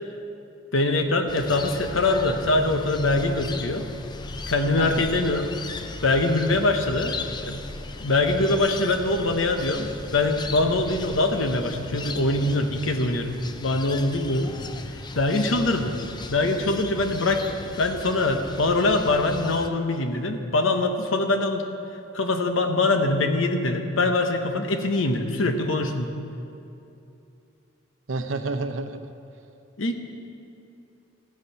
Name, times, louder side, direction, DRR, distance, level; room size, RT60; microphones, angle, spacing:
voice 1, 0.7-3.8 4.5-5.5 6.0-7.2 7.4-7.6 8.0-14.5 15.1-16.0 16.3-21.6 22.1-26.1 29.8-29.9, left 2 dB, 85° left, 6 dB, 1.0 m, -23 dB
sound 1, 1.3-19.7, left 3 dB, 20° left, 0.5 m, -37 dB
voice 2, 28.1-29.1, right 3 dB, 80° right, 9 dB, 0.7 m, -29 dB
14.0 x 8.1 x 5.7 m, 2.8 s
head